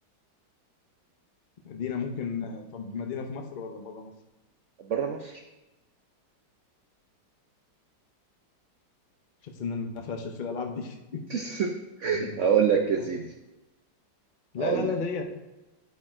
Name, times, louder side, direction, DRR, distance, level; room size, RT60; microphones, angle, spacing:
voice 1, 1.6-4.1 9.4-11.3 12.0-12.4 12.7-13.1 14.5-15.2, left 5 dB, 90° left, 3 dB, 0.4 m, -34 dB
voice 2, 4.9-5.3 11.3-11.7 12.0-13.3 14.6-14.9, right 7 dB, 90° right, 3 dB, 0.6 m, -25 dB
9.9 x 3.5 x 4.3 m, 1.0 s
omnidirectional pair, 2.0 m